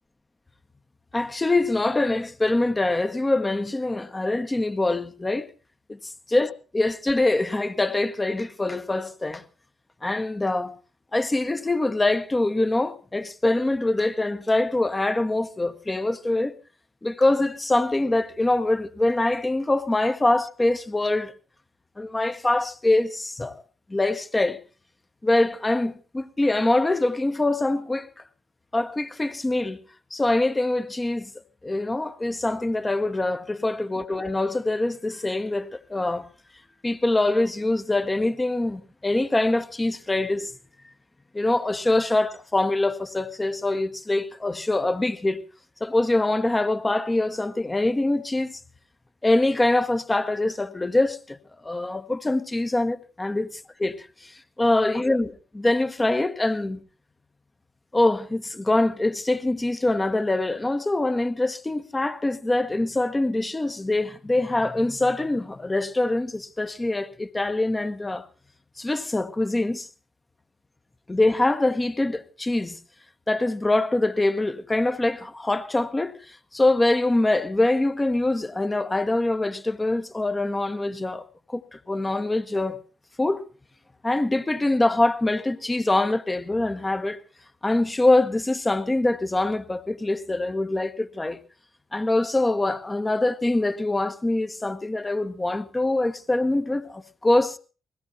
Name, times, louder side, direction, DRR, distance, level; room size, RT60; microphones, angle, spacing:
voice 1, 1.1-5.5 6.3-9.4 10.0-10.8 11.1-16.6 17.0-21.3 22.0-23.6 23.9-24.6 25.2-28.1 28.7-29.8 30.1-31.3 31.6-36.3 36.8-40.5 41.3-45.4 45.8-48.6 49.2-51.4 51.6-53.5 53.8-56.8 57.9-68.2 68.8-69.9 71.1-72.8 73.3-82.8 83.2-83.4 84.0-87.2 87.6-91.4 91.9-97.6, left 2 dB, 20° left, 1.1 m, -24 dB
21.5 x 16.5 x 2.8 m
figure-of-eight pair, 40°, 0 cm